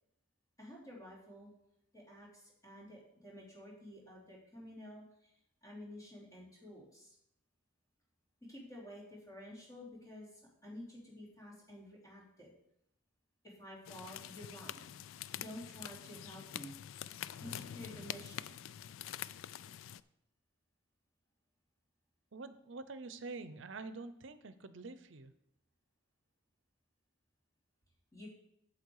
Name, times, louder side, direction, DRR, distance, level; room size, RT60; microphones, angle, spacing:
voice 1, 0.6-1.5 1.9-5.0 5.6-7.1 8.5-10.3 10.6-12.5 13.6-14.8 15.3-16.7 17.4-18.6 28.1-28.3, left 1 dB, 20° left, -6 dB, 3.3 m, -51 dB
sound 1, 13.8-20.0, left 11 dB, 80° left, 0.3 m, -46 dB
voice 2, 22.3-25.4, right 3 dB, 70° right, 12 dB, 0.7 m, -46 dB
8.6 x 7.4 x 4.8 m, 0.77 s
head